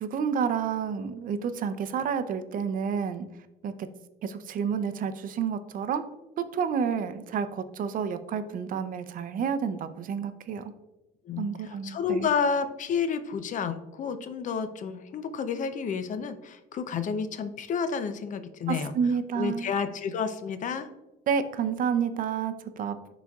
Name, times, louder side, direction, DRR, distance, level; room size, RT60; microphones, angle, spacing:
voice 1, 0.0-3.3 3.6-3.9 4.2-6.0 6.4-10.7 11.4-12.3 18.7-19.7 21.3-23.1, right 7 dB, 55° right, 11 dB, 0.5 m, -30 dB
voice 2, 11.2-18.9 19.3-20.9, left 6 dB, 50° left, 10 dB, 0.6 m, -30 dB
11.0 x 4.1 x 2.3 m, 1.0 s
cardioid pair, 110°, 17 cm